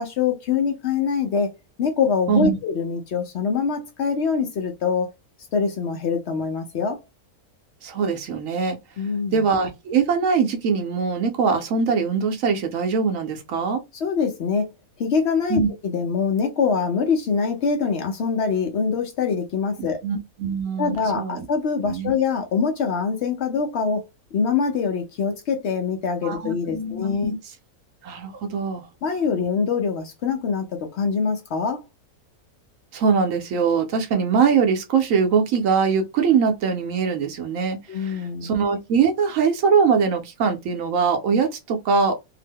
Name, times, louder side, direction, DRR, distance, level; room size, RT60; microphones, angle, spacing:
voice 1, 0.0-1.5 1.8-5.1 5.5-7.0 9.0-9.4 13.9-14.7 15.0-20.0 20.8-24.0 24.3-27.3 29.0-31.8 37.9-38.5, left 5 dB, 65° left, 0.7 m, -24 dB
voice 2, 7.8-8.8 9.3-13.8 15.5-15.7 20.0-21.4 21.8-22.1 26.2-27.4 28.0-28.9 32.9-42.2, right 5 dB, 65° right, 0.9 m, -22 dB
2.8 x 2.0 x 3.4 m
omnidirectional pair, 1.6 m